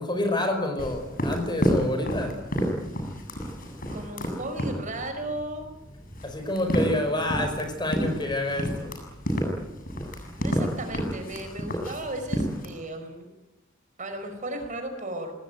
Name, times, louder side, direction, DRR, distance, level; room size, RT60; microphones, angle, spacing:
voice 1, 0.0-2.4 6.2-8.9, left 1 dB, 20° left, 6 dB, 5.2 m, -28 dB
sound 1, 0.8-12.7, equal, 45° left, 8.0 m, -30 dB
voice 2, 3.9-5.7 6.9-7.7 10.4-13.3 14.0-15.3, right 1 dB, 40° right, 6 dB, 5.3 m, -36 dB
26.5 x 19.5 x 9.4 m, 0.94 s
head